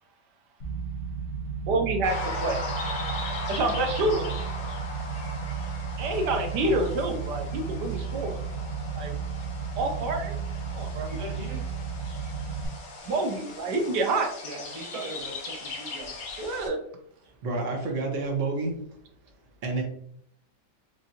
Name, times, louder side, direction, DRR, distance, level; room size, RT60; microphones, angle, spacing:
sound 1, 0.6-12.7, right 6 dB, 80° left, 1.8 m, -34 dB
voice 1, 1.7-2.6 3.5-4.3 6.0-8.3 9.0-9.1 9.8-10.4 10.7-11.1 13.1-14.3 16.4-16.8, right 2 dB, 80° right, 4 dB, 1.2 m, -27 dB
sound 2, 2.0-16.7, left 2 dB, 60° left, 1.2 m, -38 dB
voice 2, 11.1-11.6 14.4-16.2, right 1 dB, 30° right, -1 dB, 0.6 m, -40 dB
voice 3, 17.2-18.9 19.6-19.8, right 3 dB, 50° right, 1 dB, 1.1 m, -29 dB
5.2 x 2.6 x 2.7 m, 0.69 s
omnidirectional pair, 1.9 m